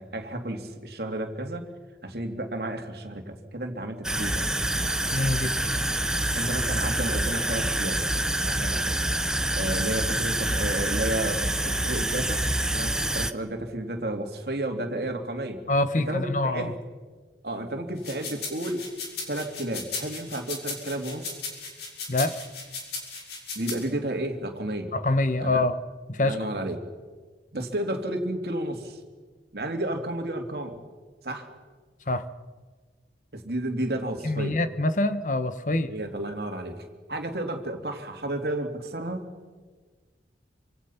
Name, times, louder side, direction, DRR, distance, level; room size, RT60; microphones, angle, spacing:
voice 1, 0.0-1.7 2.0-4.5 6.3-8.0 8.3-9.0 9.5-12.4 12.7-15.6 15.9-16.7 17.4-18.8 19.3-21.4 23.5-24.9 25.4-25.6 26.2-26.8 27.5-29.0 29.5-30.8 31.2-31.5 33.3-34.6 35.7-39.3, right 1 dB, 60° right, 4 dB, 2.9 m, -32 dB
sound 1, 4.0-13.3, right 1 dB, 5° right, 0.7 m, -26 dB
voice 2, 5.1-5.6 15.7-16.7 22.1-22.4 24.9-25.8 26.1-26.4 32.1-32.2 34.2-35.9, left 2 dB, 45° left, 11 dB, 1.1 m, -25 dB
sound 2, 18.0-23.8, left 4 dB, 70° left, 6.2 m, -36 dB
26.5 x 26.0 x 5.8 m, 1.4 s
head